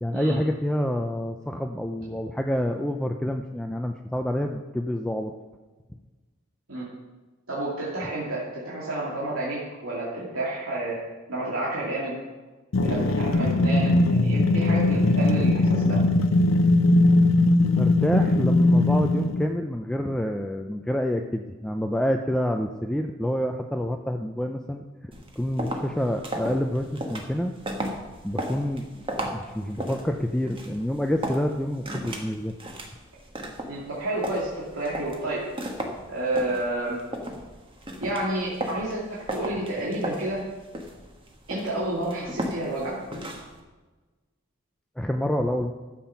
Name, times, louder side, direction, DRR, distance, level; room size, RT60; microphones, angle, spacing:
voice 1, 0.0-5.3 17.8-27.5 28.2-32.5 45.0-45.7, equal, 5° left, 4 dB, 0.5 m, -28 dB
voice 2, 7.5-11.0 11.3-12.2 12.8-16.0 33.6-35.4 36.1-37.0 38.0-40.4 41.5-43.0, right 1 dB, 85° right, -6 dB, 2.5 m, -30 dB
sound 1, 12.7-19.5, left 2 dB, 70° left, 0.7 m, -20 dB
sound 2, 25.1-43.6, right 1 dB, 25° right, 1.5 m, -36 dB
13.0 x 7.6 x 5.7 m, 1.2 s
head